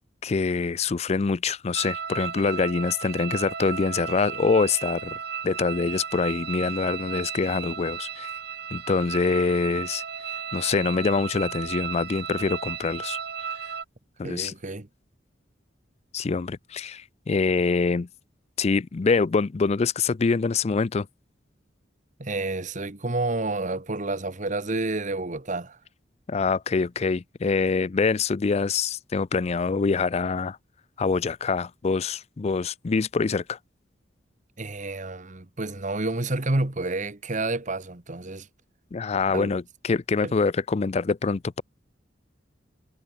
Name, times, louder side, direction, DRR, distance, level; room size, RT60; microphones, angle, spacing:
voice 1, 0.2-5.2 5.4-8.3 8.7-10.0 10.5-13.2 14.2-14.5 16.1-18.1 18.6-21.1 26.3-30.6 31.0-33.6 38.9-41.6, left 4 dB, 35° left, 0.4 m, -25 dB
sound 1, 1.7-13.8, right 7 dB, 60° right, 1.7 m, -34 dB
voice 2, 14.2-14.9 22.2-25.8 34.6-38.5 39.3-39.5 40.2-40.3, right 2 dB, 45° right, 1.5 m, -29 dB
head